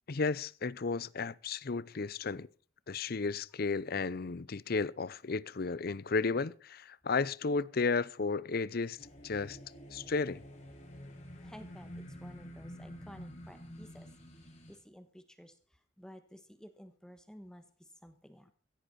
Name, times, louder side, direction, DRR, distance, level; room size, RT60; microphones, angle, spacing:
voice 1, 0.1-2.5 2.9-9.0 9.2-9.6 9.9-10.4, left 4 dB, 55° left, 0.6 m, -33 dB
sound 1, 9.0-14.8, equal, 35° left, 6.1 m, -49 dB
voice 2, 11.4-14.1 14.4-18.5, equal, 5° left, 1.2 m, -54 dB
16.0 x 14.5 x 4.3 m
head